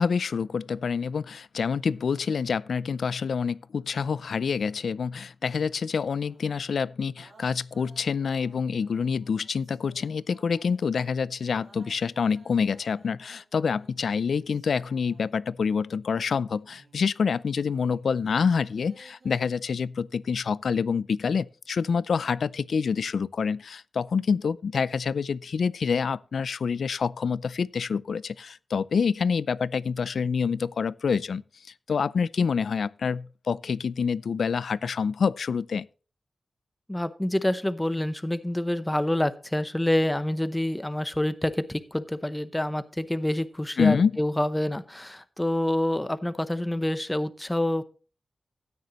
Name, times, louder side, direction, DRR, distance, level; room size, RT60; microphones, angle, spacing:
voice 1, 0.0-31.4 31.9-35.9 43.8-44.1, left 6 dB, 75° left, 0.4 m, -27 dB
sound 1, 5.7-6.7 7.2-11.1 11.6-15.5 16.5-19.3, right 3 dB, 80° right, 3.7 m, -59 dB
voice 2, 36.9-47.8, left 1 dB, 10° left, 0.7 m, -27 dB
13.5 x 9.6 x 3.0 m
wide cardioid pair, 170°, 0 cm